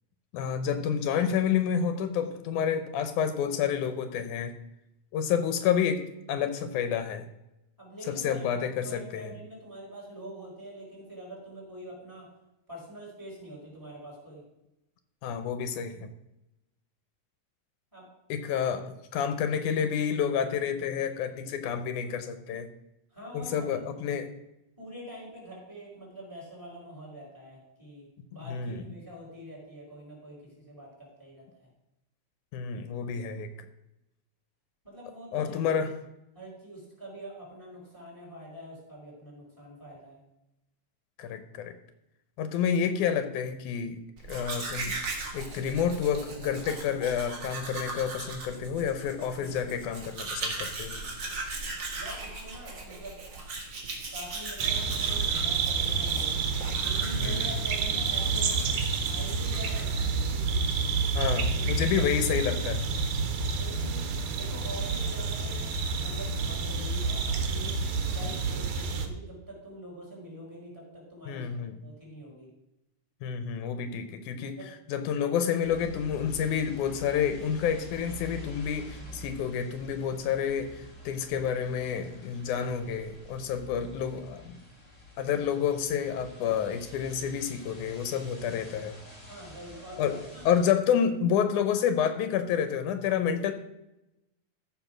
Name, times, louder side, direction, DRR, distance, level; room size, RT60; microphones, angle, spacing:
voice 1, 0.3-4.5 5.1-6.0 6.3-7.2 8.2-9.3 15.2-16.1 18.3-22.7 23.3-24.3 28.5-28.8 32.5-33.5 35.3-35.9 41.2-41.7 42.4-44.0 44.3-45.0 45.3-51.0 57.2-57.4 61.1-62.8 68.2-68.3 71.3-71.7 73.2-74.6 74.9-84.6 85.2-89.0 90.0-90.2 90.5-93.5, left 8 dB, 85° left, 9 dB, 2.2 m, -29 dB
voice 2, 7.8-12.3 12.7-14.4 17.9-18.1 23.1-23.8 24.8-31.4 34.8-35.8 36.3-40.2 52.0-53.2 54.1-56.4 56.8-58.6 59.1-60.6 61.3-62.0 63.6-64.1 64.3-67.8 68.1-72.5 74.6-74.7 89.3-90.7, equal, 5° right, -4 dB, 4.6 m, -45 dB
Domestic sounds home sounds, 44.2-60.3, right 3 dB, 40° right, 2.1 m, -39 dB
sound 1, 54.6-69.1, right 4 dB, 75° right, 2.4 m, -29 dB
sound 2, 75.6-90.7, equal, 20° left, 2.3 m, -48 dB
14.0 x 4.8 x 6.0 m, 0.89 s
omnidirectional pair, 3.5 m